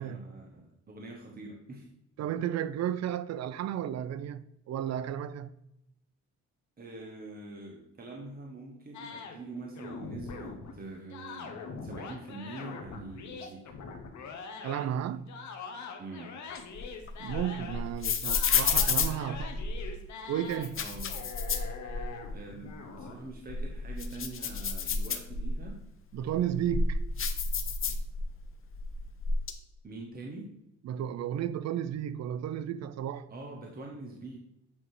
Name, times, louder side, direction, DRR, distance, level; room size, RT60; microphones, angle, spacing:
voice 1, 0.0-1.9 2.2-2.3 6.8-13.8 16.0-16.4 20.8-21.2 22.3-25.9 29.8-30.5 33.3-34.4, right 2 dB, 30° right, 1.1 m, -44 dB
voice 2, 2.2-5.5 14.6-15.3 17.2-19.7 20.3-20.8 26.1-27.0 30.8-33.3, right 10 dB, 60° right, 0.5 m, -33 dB
sound 1, 8.9-10.7 11.1-14.9 15.3-17.9 18.2-20.7 21.0-23.1, left 5 dB, 70° left, 1.2 m, -43 dB
sound 2, 16.5-19.9 20.5-22.3 22.7-22.8 23.3-25.7 26.3-28.4 28.7-29.5, left 5 dB, 45° left, 0.8 m, -30 dB
8.6 x 3.0 x 4.8 m
cardioid pair, 90°, 30 cm